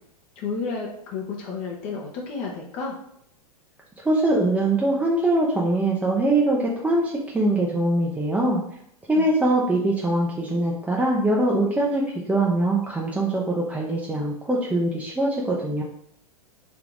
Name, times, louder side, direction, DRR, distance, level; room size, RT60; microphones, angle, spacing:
voice 1, 0.4-3.0 9.2-9.3, left 4 dB, 40° left, -1 dB, 0.7 m, -31 dB
voice 2, 4.0-8.6 9.1-15.8, right 1 dB, 5° right, -4 dB, 0.5 m, -22 dB
3.4 x 2.8 x 3.7 m, 0.72 s
figure-of-eight pair, 100°, 20 cm